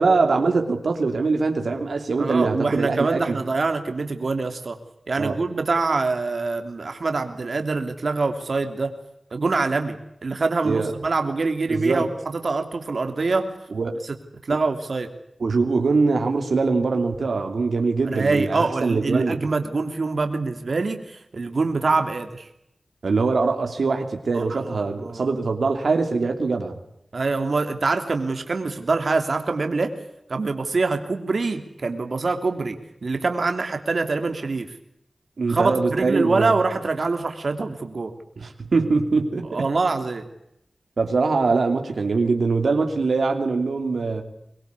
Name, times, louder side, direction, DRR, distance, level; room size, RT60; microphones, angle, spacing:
voice 1, 0.0-3.4 5.2-5.4 10.6-10.9 11.7-12.1 13.7-14.0 15.4-19.4 23.0-26.8 35.4-36.5 38.4-39.6 41.0-44.2, right 4 dB, 85° right, 5 dB, 3.0 m, -22 dB
voice 2, 2.2-4.8 5.1-8.9 9.3-10.0 10.2-12.1 12.3-13.5 14.5-15.1 18.1-22.5 24.3-25.3 27.1-29.9 30.3-32.8 33.0-34.7 35.5-38.1 39.5-40.2, right 3 dB, 65° right, 6 dB, 3.0 m, -24 dB
24.0 x 22.0 x 8.3 m, 0.79 s
wide cardioid pair, 75°, 0 cm